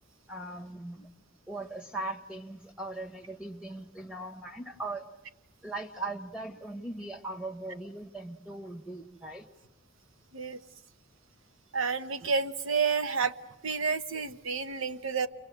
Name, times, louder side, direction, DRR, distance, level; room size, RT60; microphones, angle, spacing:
voice 1, 0.3-1.1 1.5-5.1 5.6-9.5, right 2 dB, 5° right, 5 dB, 1.8 m, -39 dB
voice 2, 11.7-13.3 13.6-15.3, right 5 dB, 90° right, 10 dB, 1.2 m, -30 dB
29.5 x 23.5 x 8.0 m, 0.91 s
head